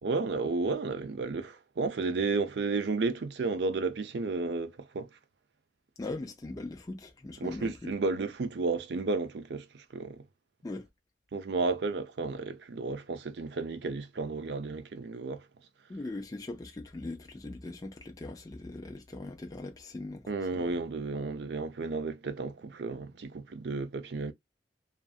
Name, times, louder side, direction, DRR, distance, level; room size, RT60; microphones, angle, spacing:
voice 1, 0.0-5.1 7.4-10.2 11.3-15.4 20.3-24.3, right 3 dB, 70° right, 0.5 m, -32 dB
voice 2, 6.0-7.9 10.6-10.9 15.9-20.8, left 2 dB, 20° left, 0.3 m, -40 dB
2.5 x 2.4 x 2.3 m
head